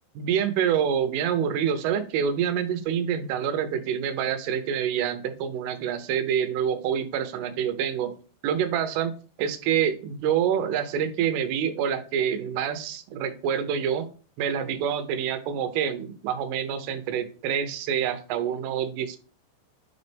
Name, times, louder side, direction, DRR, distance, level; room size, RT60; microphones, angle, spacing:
voice 1, 0.2-8.2 8.4-14.1 14.4-19.2, right 8 dB, 85° right, 9 dB, 3.4 m, -27 dB
10.0 x 4.1 x 3.5 m, 0.38 s
omnidirectional pair, 5.6 m